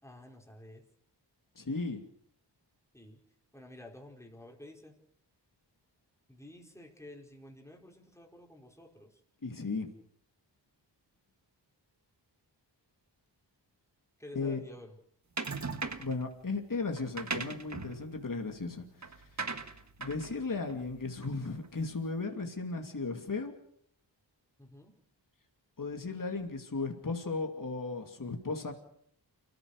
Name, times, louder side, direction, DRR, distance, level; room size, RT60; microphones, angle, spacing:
voice 1, 0.0-0.8 2.9-3.2 3.5-4.9 6.3-9.2 14.2-15.0 24.6-24.9, left 1 dB, 5° left, 0 dB, 4.8 m, -51 dB
voice 2, 1.6-2.0 9.4-9.9 14.3-14.6 16.0-18.9 20.0-23.5 25.8-28.7, left 3 dB, 50° left, 4 dB, 2.7 m, -35 dB
sound 1, 15.4-16.2 17.0-21.7, right 4 dB, 40° right, 1.5 m, -40 dB
29.0 x 15.0 x 6.7 m, 0.66 s
wide cardioid pair, 90°, 43 cm